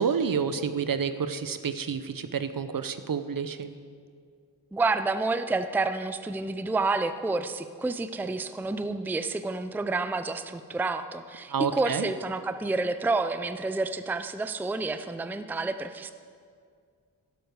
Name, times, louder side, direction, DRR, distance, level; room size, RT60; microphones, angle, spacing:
voice 1, 0.0-3.7 11.5-12.1, right 6 dB, 50° right, 11 dB, 0.8 m, -29 dB
voice 2, 4.7-16.1, right 3 dB, 5° right, 10 dB, 0.5 m, -29 dB
12.0 x 11.5 x 4.7 m, 2.2 s
cardioid pair, 50°, 43 cm